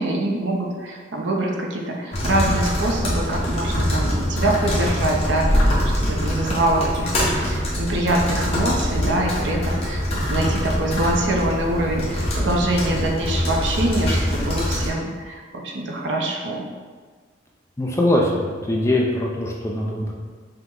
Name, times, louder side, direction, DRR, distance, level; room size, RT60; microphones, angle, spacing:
voice 1, 0.0-16.7, right 1 dB, 70° right, 0 dB, 0.6 m, -24 dB
sound 1, 2.1-14.9, equal, 30° left, 0.9 m, -23 dB
voice 2, 17.8-20.1, left 1 dB, 15° left, -1 dB, 0.4 m, -22 dB
5.6 x 2.1 x 3.6 m, 1.5 s
head